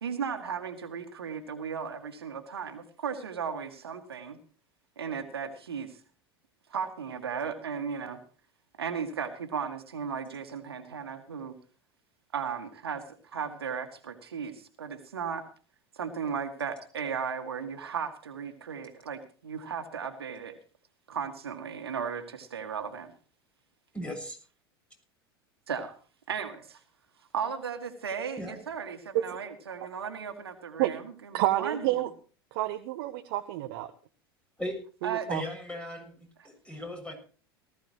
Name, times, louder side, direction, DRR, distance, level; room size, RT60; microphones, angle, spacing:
voice 1, 0.0-4.4 5.0-6.0 6.7-8.2 8.8-11.6 12.3-15.5 15.9-20.6 21.1-23.1 25.7-25.9 26.3-26.8 27.3-31.9 35.0-35.3, right 6 dB, 80° right, 7 dB, 2.0 m, -36 dB
voice 2, 23.9-24.4 28.4-28.6 34.6-34.8 35.3-36.2 36.4-37.1, left 1 dB, 10° left, 4 dB, 7.0 m, -37 dB
voice 3, 31.3-32.1 32.5-33.9 35.0-35.4, right 15 dB, 60° right, 8 dB, 1.0 m, -29 dB
18.5 x 15.0 x 3.1 m, 0.38 s
hypercardioid pair, 80°, 13 cm